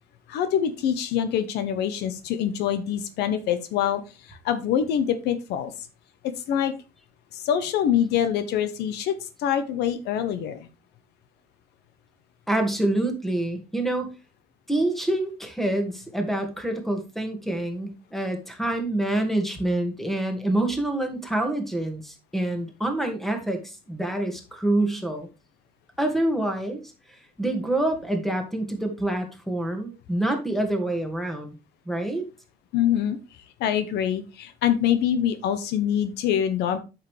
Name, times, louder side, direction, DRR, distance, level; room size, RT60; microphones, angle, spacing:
voice 1, 0.3-4.0 4.3-5.7 6.5-6.7 7.3-10.7 32.7-33.2 33.6-36.8, left 9 dB, 85° left, 11 dB, 1.0 m, -25 dB
voice 2, 12.5-14.1 14.7-25.3 26.0-26.8 27.4-31.6 31.9-32.3, right 1 dB, ahead, 5 dB, 2.0 m, -26 dB
8.2 x 6.5 x 3.3 m, 0.28 s
cardioid pair, 110°, 17 cm